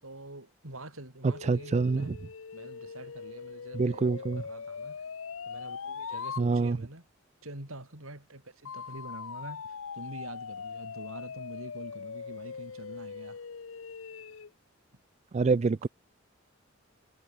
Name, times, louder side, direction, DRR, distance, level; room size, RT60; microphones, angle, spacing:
voice 1, 0.0-2.1 2.5-5.0 5.4-7.0 7.4-13.4, right 1 dB, 85° right, 6.4 m, -46 dB
sound 1, 1.2-6.5 8.6-14.5, left 6 dB, 75° left, 0.7 m, -41 dB
voice 2, 1.4-2.2 3.7-4.4 6.4-6.8 15.3-15.9, right 4 dB, 35° right, 0.3 m, -26 dB
head